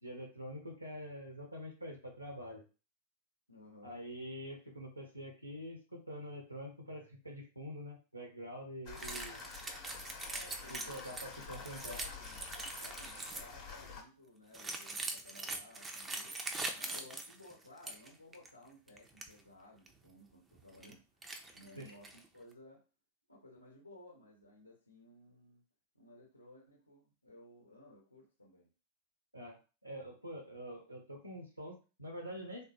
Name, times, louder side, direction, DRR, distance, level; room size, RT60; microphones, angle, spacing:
voice 1, 0.0-2.6 3.8-9.4 10.7-12.0 21.8-21.9 29.3-29.6 29.8-32.6, equal, 90° right, 2 dB, 0.7 m, -46 dB
voice 2, 3.5-4.0 10.3-11.0 11.8-12.5 12.8-16.4 16.7-21.0 21.5-22.8 23.3-25.6 25.9-28.7, left 2 dB, 85° left, -2 dB, 0.8 m, -57 dB
sound 1, 8.9-14.0, left 5 dB, 45° left, 0.8 m, -48 dB
sound 2, 9.0-13.6 14.5-18.1 18.3-18.5 18.9-19.3 19.9-20.0 20.5-20.9 21.2-22.3, right 2 dB, 15° right, 0.4 m, -43 dB
3.4 x 2.2 x 2.8 m, 0.33 s
figure-of-eight pair, 90°, 0 cm